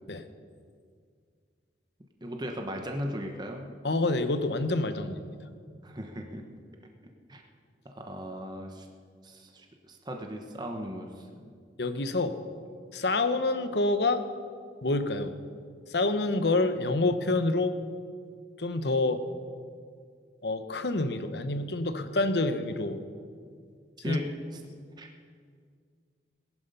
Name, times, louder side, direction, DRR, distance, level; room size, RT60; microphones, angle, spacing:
voice 1, 2.2-3.7 5.8-6.6 7.3-7.4 7.8-8.9 9.2-11.3 24.0-24.6 25.0-25.1, equal, 25° right, 3 dB, 1.1 m, -37 dB
voice 2, 3.8-5.2 11.8-12.4 12.9-14.2 14.8-15.3 15.9-17.8 18.6-19.2 20.4-23.0 24.1-24.2, left 2 dB, 65° left, 10 dB, 0.9 m, -27 dB
18.0 x 10.5 x 5.5 m, 2.1 s
head